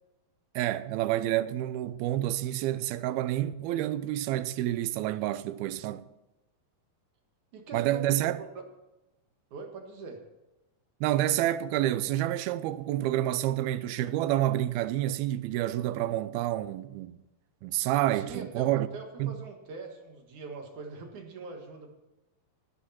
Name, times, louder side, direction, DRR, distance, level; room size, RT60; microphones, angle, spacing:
voice 1, 0.6-6.1 7.7-8.4 11.0-17.2 17.6-18.9 19.2-19.4, right 13 dB, 90° right, 2.6 m, -28 dB
voice 2, 7.5-8.5 9.5-10.2 18.1-21.9, right 4 dB, 60° right, 2.9 m, -43 dB
17.5 x 11.5 x 4.3 m
omnidirectional pair, 4.3 m